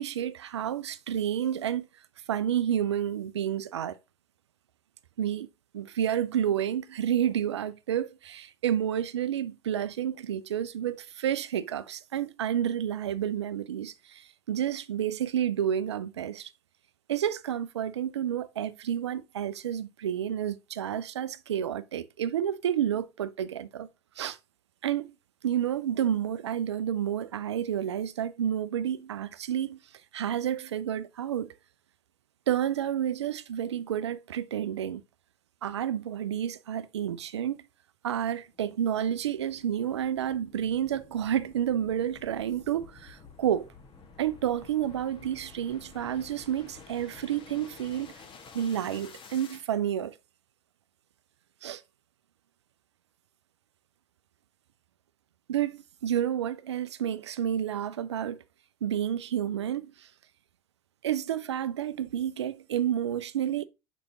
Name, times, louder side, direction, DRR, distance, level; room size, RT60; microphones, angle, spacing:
voice 1, 0.0-1.9 2.3-4.0 5.2-5.5 5.7-16.5 17.1-23.9 24.2-24.4 24.8-25.1 25.4-29.8 30.1-31.5 32.5-35.0 35.6-37.6 38.0-43.7 44.2-48.2 48.5-50.2 51.6-51.8 55.5-58.4 58.8-60.1 61.0-63.7, right 10 dB, 80° right, 0.5 m, -30 dB
sound 1, 38.3-49.7, left 5 dB, 35° left, 1.6 m, -52 dB
6.6 x 5.0 x 2.9 m
hypercardioid pair, 70°, 14 cm